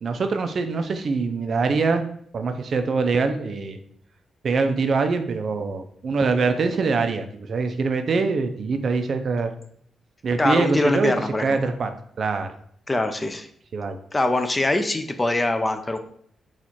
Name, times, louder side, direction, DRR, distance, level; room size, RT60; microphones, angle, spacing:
voice 1, 0.0-2.0 2.3-3.8 4.4-9.5 10.2-11.9 12.2-12.5 13.7-14.0, right 4 dB, 50° right, 7 dB, 0.4 m, -24 dB
voice 2, 10.4-11.4 12.9-13.5 14.1-16.0, left 2 dB, 20° left, 8 dB, 0.4 m, -23 dB
4.1 x 2.4 x 4.4 m, 0.64 s
cardioid pair, 115°, 0 cm